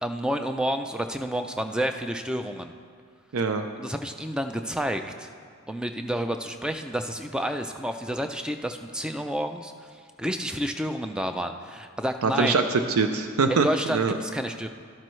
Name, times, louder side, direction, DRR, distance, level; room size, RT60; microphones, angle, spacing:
voice 1, 0.0-2.7 3.8-5.3 5.7-12.6 13.5-14.7, equal, 5° right, 7 dB, 0.3 m, -30 dB
voice 2, 3.3-3.7 12.2-14.1, right 4 dB, 75° right, 7 dB, 0.5 m, -23 dB
12.0 x 12.0 x 3.1 m, 2.1 s
head